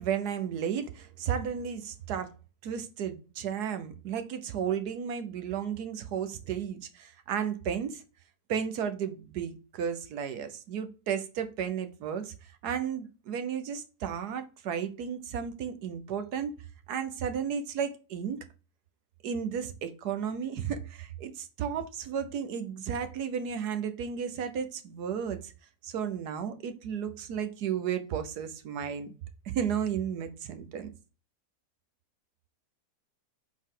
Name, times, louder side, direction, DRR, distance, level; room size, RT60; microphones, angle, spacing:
voice 1, 0.0-2.3 2.6-8.0 8.5-12.3 12.6-16.5 16.9-18.4 19.2-25.5 25.8-29.1 29.4-30.9, right 8 dB, 80° right, 1.4 m, -33 dB
7.1 x 4.3 x 3.8 m
omnidirectional pair, 1.7 m